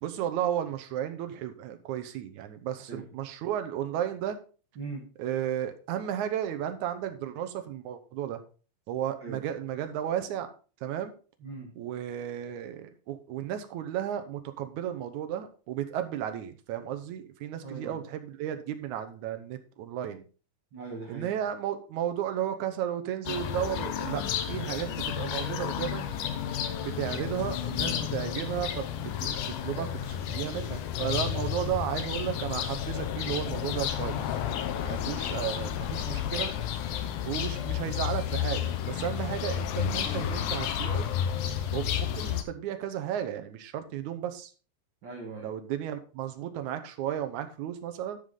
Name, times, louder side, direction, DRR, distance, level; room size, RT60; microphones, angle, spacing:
voice 1, 0.0-4.4 5.2-8.4 8.9-10.5 10.8-11.1 11.7-20.2 21.1-26.0 26.8-34.4 34.8-36.5 37.2-41.1 41.7-44.5 45.4-48.2, right 10 dB, 70° right, 8 dB, 2.0 m, -34 dB
voice 2, 4.8-5.1 9.2-9.4 11.4-11.7 17.6-18.0 20.7-21.3 35.2-35.4 45.0-45.5, right 4 dB, 55° right, 0 dB, 1.3 m, -40 dB
sound 1, 23.3-42.4, left 9 dB, 75° left, 2.1 m, -31 dB
13.5 x 5.0 x 3.9 m, 0.38 s
omnidirectional pair, 4.2 m